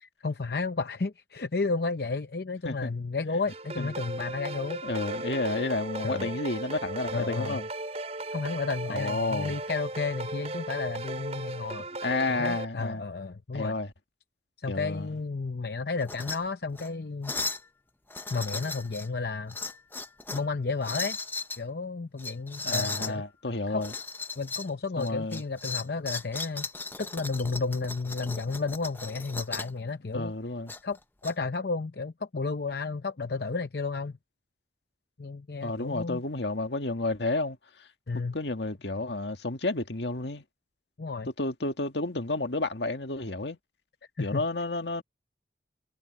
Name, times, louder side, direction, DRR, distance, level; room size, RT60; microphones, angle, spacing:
voice 1, 0.2-4.8 6.0-6.3 7.1-7.6 8.3-11.9 12.3-13.7 14.6-17.3 18.3-19.6 20.3-21.2 21.6-23.2 23.7-23.8 24.4-26.7 27.0-30.3 30.8-34.2 35.2-36.2 38.1-38.4 41.0-41.3 44.2-44.4, left 4 dB, 65° left, 0.7 m, -32 dB
sound 1, 3.5-12.7, right 2 dB, 35° right, 4.9 m, -36 dB
voice 2, 4.8-7.7 8.9-9.6 12.0-13.0 13.5-13.9 14.7-15.1 22.6-23.9 25.0-25.4 30.1-30.7 35.6-37.9 38.3-40.4 41.4-43.6 44.2-45.0, left 2 dB, 80° left, 1.8 m, -31 dB
sound 2, 16.0-16.4 16.7-16.9 17.2-17.7 18.1-19.1 19.5-20.5 20.8-21.6 22.2-23.1 23.8-24.7 25.0-29.8 30.7-31.3, left 3 dB, 10° left, 0.6 m, -36 dB
head